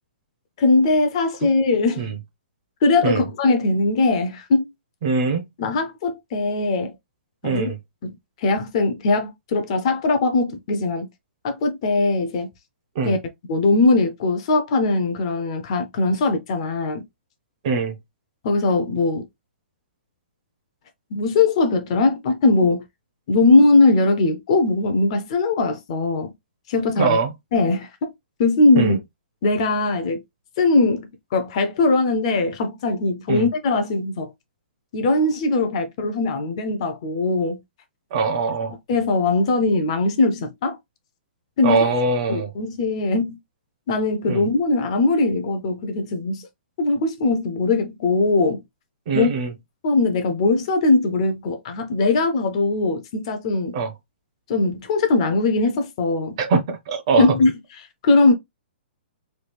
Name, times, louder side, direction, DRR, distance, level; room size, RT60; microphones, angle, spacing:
voice 1, 0.6-2.1 2.8-4.7 5.6-6.9 7.4-7.7 8.0-11.1 11.4-12.5 13.0-13.2 13.5-17.0 18.4-19.3 21.1-22.8 23.3-26.3 26.7-27.2 27.5-28.1 28.4-29.0 29.4-30.2 30.6-34.3 34.9-37.6 38.9-40.8 41.6-41.9 42.3-43.4 43.9-46.5 46.8-48.6 49.1-49.3 49.8-53.8 54.5-56.4 57.2-57.5 58.0-58.3, left 3 dB, 30° left, 0.5 m, -20 dB
voice 2, 5.0-5.5 7.4-7.7 13.0-13.2 17.6-17.9 27.0-27.3 28.8-29.0 33.3-33.5 38.1-38.7 41.6-42.5 44.3-44.4 49.1-49.5 53.7-53.9 56.4-57.3, right 4 dB, 30° right, 0.6 m, -22 dB
3.1 x 2.3 x 3.3 m
hypercardioid pair, 170°, 6 cm